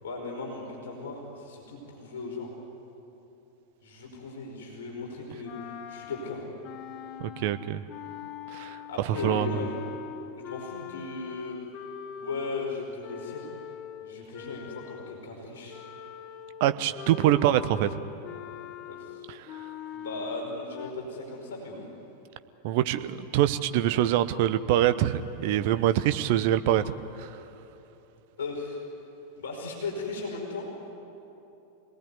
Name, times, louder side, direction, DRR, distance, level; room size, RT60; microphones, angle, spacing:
voice 1, 0.0-2.5 3.8-5.5 5.9-6.4 8.9-9.8 10.4-11.6 12.2-13.5 14.0-15.8 18.9-19.3 19.9-21.9 28.4-28.8 29.4-30.9, left 3 dB, 60° left, -1 dB, 5.1 m, -37 dB
sound 1, 5.4-15.3 15.7-20.9, left 9 dB, 40° left, 1.1 m, -42 dB
voice 2, 7.2-7.8 8.5-8.8 9.0-9.6 16.6-18.0 19.3-19.6 22.6-27.3, right 12 dB, 50° right, 12 dB, 1.0 m, -25 dB
26.5 x 19.0 x 9.5 m, 3.0 s
figure-of-eight pair, 90°, 0 cm